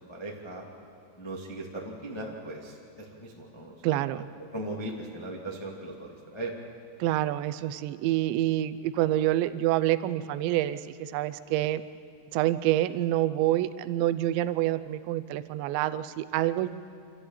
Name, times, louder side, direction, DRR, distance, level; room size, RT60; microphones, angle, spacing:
voice 1, 0.1-0.7 1.2-4.2 4.5-6.5, right 1 dB, 20° left, -2 dB, 0.6 m, -38 dB
voice 2, 3.8-4.3 7.0-11.8 12.3-16.7, right 14 dB, 90° right, 13 dB, 3.0 m, -27 dB
26.5 x 13.5 x 9.0 m, 2.3 s
omnidirectional pair, 5.0 m